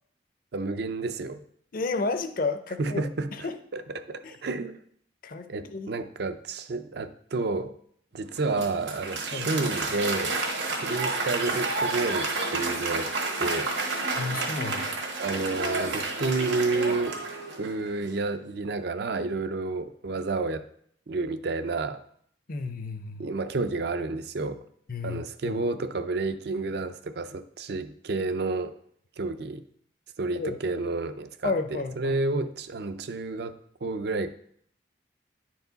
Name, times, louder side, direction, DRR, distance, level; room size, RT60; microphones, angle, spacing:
voice 1, 0.5-1.4 2.8-3.3 3.7-4.8 5.5-7.7 8.1-10.4 10.7-13.1 13.4-13.7 15.2-17.2 17.6-20.7 21.1-22.0 23.2-24.6 25.0-28.7 29.2-29.6 30.2-34.4, right 3 dB, 60° right, 10 dB, 0.5 m, -30 dB
voice 2, 1.7-3.0 3.3-3.5 4.2-4.3 5.2-5.9 9.3-9.5 14.2-15.0 22.5-23.3 24.9-25.6 30.4-30.6 31.4-32.2, left 3 dB, 45° left, 9 dB, 0.5 m, -32 dB
Applause, 8.3-17.9, right 3 dB, 75° right, 1.5 m, -30 dB
10.0 x 4.7 x 3.9 m, 0.66 s
head